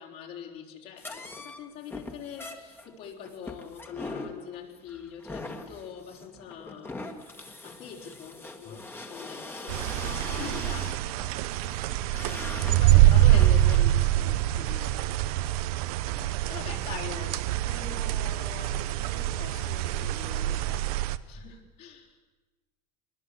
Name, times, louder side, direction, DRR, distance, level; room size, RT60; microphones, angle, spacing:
voice 1, 0.0-7.0 7.6-11.0 12.2-15.0 16.5-20.9 21.3-22.1, left 8 dB, 55° left, 0 dB, 4.3 m, -43 dB
sound 1, 1.0-13.9, left 2 dB, 10° left, 1.9 m, -42 dB
sound 2, 9.7-21.2, right 14 dB, 90° right, 0.8 m, -25 dB
voice 2, 10.3-10.7 12.9-13.1 16.6-16.8 21.4-21.5, left 4 dB, 35° left, 2 dB, 3.2 m, -41 dB
23.0 x 21.0 x 8.2 m, 1.2 s
cardioid pair, 145°, 19 cm